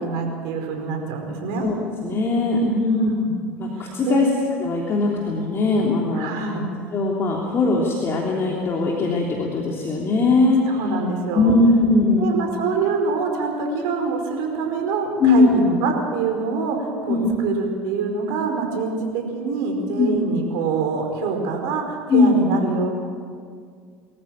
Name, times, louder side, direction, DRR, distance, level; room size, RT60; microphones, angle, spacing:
voice 1, 0.0-1.7 2.9-3.3 3.8-4.3 6.1-6.7 10.7-11.6 12.2-22.9, right 4 dB, 65° right, 3 dB, 4.8 m, -25 dB
voice 2, 2.0-3.1 3.6-4.3 4.6-6.3 6.9-10.6 11.3-12.3 15.2-15.6 17.1-17.4 20.0-20.2 22.1-22.4, left 3 dB, 35° left, -2 dB, 3.3 m, -19 dB
24.5 x 14.0 x 8.8 m, 2.1 s
hypercardioid pair, 75°, 7 cm